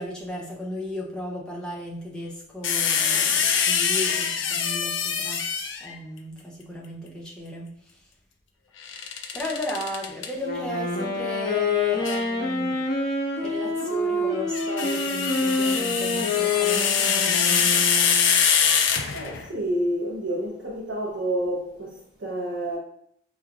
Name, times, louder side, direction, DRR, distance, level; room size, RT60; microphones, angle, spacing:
voice 1, 0.0-8.0 9.3-12.8 13.4-17.8, left 1 dB, 5° left, 0.6 m, -35 dB
sound 1, 2.6-5.9 8.8-10.3 12.0-12.3 14.3-19.5, left 7 dB, 85° left, 0.4 m, -24 dB
Wind instrument woodwind instrument, 10.4-18.3, left 3 dB, 55° left, 1.1 m, -26 dB
voice 2, 19.1-22.8, right 1 dB, 85° right, 0.9 m, -29 dB
4.5 x 3.1 x 2.4 m
head